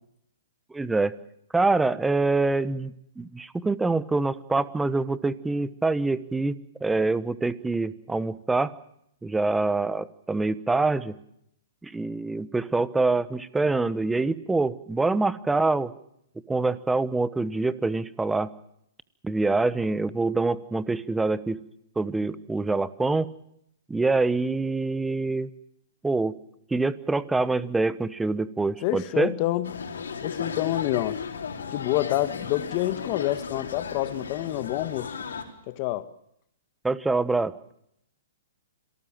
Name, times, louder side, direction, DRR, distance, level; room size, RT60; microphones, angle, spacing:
voice 1, 0.7-1.1 1.5-8.7 9.2-11.2 11.8-15.9 16.5-18.5 19.2-21.6 22.0-23.3 23.9-25.5 26.0-26.4 26.7-29.3 36.8-37.5, right 3 dB, 5° right, 1.1 m, -25 dB
voice 2, 28.8-29.7 30.2-31.2 31.7-35.1 35.7-36.1, left 16 dB, 40° left, 1.7 m, -27 dB
sound 1, 29.6-35.4, left 6 dB, 75° left, 4.2 m, -35 dB
27.0 x 18.5 x 7.5 m
hypercardioid pair, 130°, 0 cm